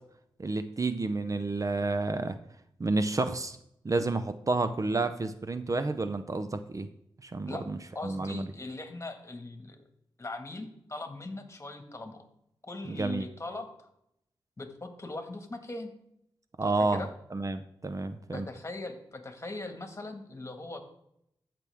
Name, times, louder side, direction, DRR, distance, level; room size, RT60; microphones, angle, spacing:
voice 1, 0.4-2.4 2.8-3.6 3.8-6.9 7.2-7.8 8.0-8.5 12.8-13.3 16.6-17.0 17.3-18.5, right 3 dB, 35° right, 10 dB, 0.6 m, -30 dB
voice 2, 8.0-9.8 10.2-12.2 12.6-13.9 14.6-15.9 16.7-17.1 18.3-20.8, left 2 dB, 30° left, 6 dB, 1.7 m, -40 dB
14.5 x 6.0 x 3.5 m, 0.77 s
cardioid pair, 55°, 9 cm